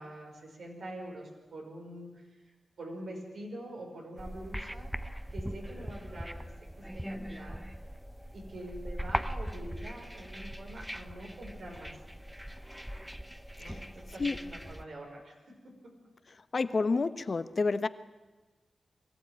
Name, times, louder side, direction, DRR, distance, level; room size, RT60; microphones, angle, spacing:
voice 1, 0.0-2.3 2.8-4.9 5.3-6.3 6.9-7.6 8.3-12.0 13.6-15.4 15.8-15.9, right 1 dB, 80° right, 0 dB, 5.4 m, -45 dB
sound 1, 4.2-14.8, equal, 5° right, 0.8 m, -40 dB
voice 2, 16.5-17.9, left 4 dB, 55° left, 12 dB, 1.0 m, -29 dB
22.5 x 14.5 x 9.0 m, 1.2 s
cardioid pair, 50°, 0 cm